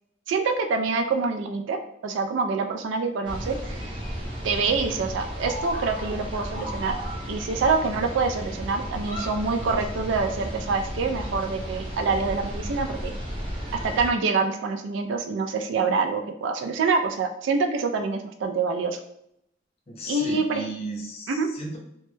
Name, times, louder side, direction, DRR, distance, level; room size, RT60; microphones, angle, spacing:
voice 1, 0.3-3.9 4.4-7.0 7.3-13.1 13.7-19.0 20.1-20.6 21.3-21.5, right 4 dB, 75° right, 5 dB, 0.3 m, -26 dB
sound 1, 3.2-14.1, equal, 25° right, 0.7 m, -34 dB
voice 2, 19.9-21.8, right 1 dB, 30° left, 0 dB, 0.5 m, -35 dB
2.2 x 2.0 x 3.0 m, 0.75 s
head